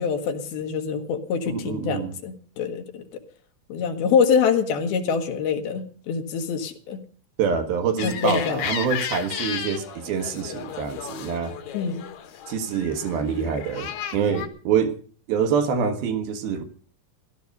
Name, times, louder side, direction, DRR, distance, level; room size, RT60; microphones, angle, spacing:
voice 1, 0.0-3.0 3.7-7.0 8.0-8.6 11.7-12.0, left 6 dB, 80° left, 6 dB, 3.6 m, -25 dB
voice 2, 1.5-2.1 7.4-11.5 12.5-15.0 15.3-16.6, right 6 dB, 80° right, 7 dB, 3.5 m, -25 dB
sound 1, 8.0-14.5, left 8 dB, 60° left, 2.3 m, -34 dB
15.5 x 13.0 x 5.3 m, 0.43 s
omnidirectional pair, 4.3 m